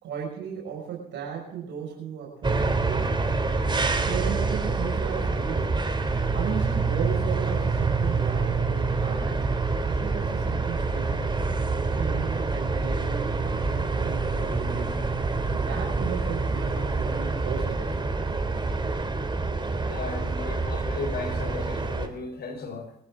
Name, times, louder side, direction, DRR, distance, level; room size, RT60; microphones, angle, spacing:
voice 1, 0.0-3.3 4.0-5.8 6.3-9.4 9.8-11.3 11.8-14.9 15.5-17.9, right 7 dB, 65° right, -2 dB, 6.0 m, -35 dB
sound 1, 2.4-22.1, right 3 dB, 25° right, 3.1 m, -26 dB
voice 2, 19.9-23.0, left 4 dB, 55° left, 5 dB, 4.8 m, -36 dB
25.5 x 13.5 x 3.8 m, 0.73 s
hypercardioid pair, 50°, 20 cm